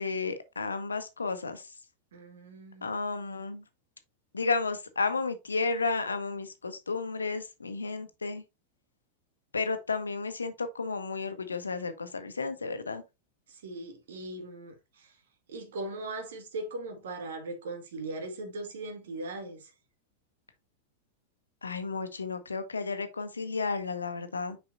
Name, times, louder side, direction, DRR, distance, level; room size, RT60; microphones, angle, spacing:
voice 1, 0.0-1.7 2.8-3.6 4.3-8.4 9.5-13.0 21.6-24.6, left 4 dB, 75° left, 1.0 m, -32 dB
voice 2, 2.1-2.9 13.5-15.2 15.5-19.7, right 2 dB, 60° right, 1.8 m, -39 dB
6.7 x 5.3 x 2.6 m
figure-of-eight pair, 90°, 0 cm